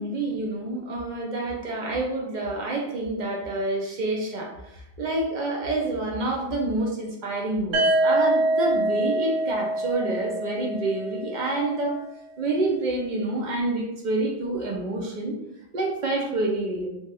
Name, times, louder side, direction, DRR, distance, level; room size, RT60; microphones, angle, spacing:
voice 1, 0.0-12.0 12.4-15.4 15.7-16.9, right 2 dB, 55° right, 0 dB, 0.5 m, -28 dB
sound 1, 7.7-11.6, right 1 dB, 85° right, 1.0 m, -24 dB
2.8 x 2.1 x 3.3 m, 0.84 s
omnidirectional pair, 1.2 m